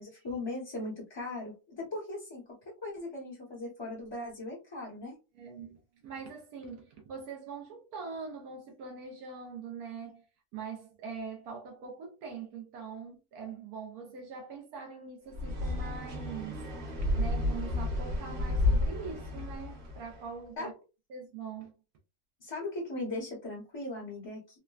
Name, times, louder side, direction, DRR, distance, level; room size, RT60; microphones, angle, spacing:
voice 1, 0.0-2.5 2.8-5.1 20.6-20.7 22.4-24.6, left 2 dB, 20° left, 0.8 m, -38 dB
voice 2, 5.4-10.2 10.5-16.6 17.0-20.7 21.1-21.7, right 5 dB, 90° right, 1.2 m, -43 dB
sound 1, 15.3-20.2, left 2 dB, 65° right, 1.5 m, -31 dB
3.6 x 2.1 x 2.3 m
omnidirectional pair, 1.6 m